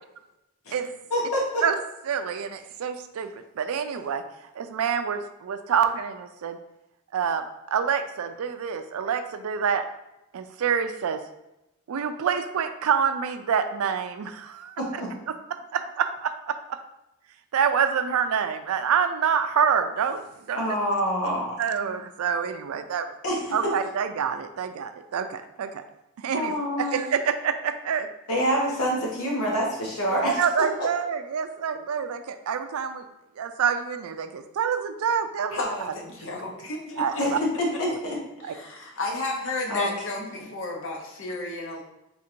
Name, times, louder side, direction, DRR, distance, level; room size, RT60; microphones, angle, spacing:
voice 1, 1.1-1.6 14.8-15.1 20.5-21.8 23.2-23.5 26.3-27.1 28.3-30.4 37.2-37.3 37.6-38.2 39.7-39.9 40.2-40.5, equal, 80° left, -3 dB, 1.3 m, -26 dB
voice 2, 2.1-4.2 4.6-6.6 7.1-9.8 10.3-11.2 11.9-14.8 15.7-16.8 17.5-20.2 20.5-20.6 21.6-23.1 23.5-25.8 26.2-26.5 26.8-28.1 30.1-33.0 33.4-35.9 37.0-37.4 38.4-38.5, right 7 dB, 75° right, 9 dB, 0.4 m, -27 dB
voice 3, 35.5-37.2 38.5-41.8, left 2 dB, 60° left, 1 dB, 0.7 m, -32 dB
3.7 x 2.5 x 4.3 m, 0.90 s
head